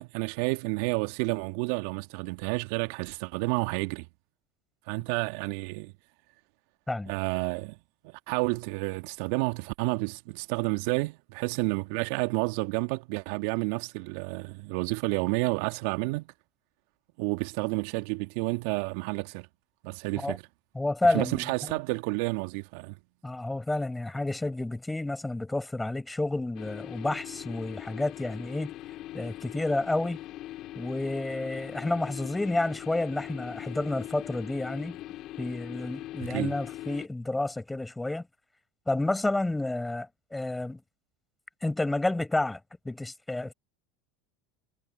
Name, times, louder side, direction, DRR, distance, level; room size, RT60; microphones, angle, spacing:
voice 1, 0.0-4.1 4.9-5.9 7.1-7.8 8.0-16.3 17.2-19.5 19.8-20.4 21.0-23.0 36.2-36.5, right 27 dB, 65° right, 1.7 m, -30 dB
voice 2, 20.7-21.8 23.2-28.7 29.1-30.2 30.7-35.0 35.4-38.3 38.9-40.8 41.6-42.6 42.8-43.5, left 2 dB, 10° left, 6.5 m, -30 dB
sound 1, 26.6-37.1, left 15 dB, 50° left, 4.5 m, -41 dB
hypercardioid pair, 80°, 0 cm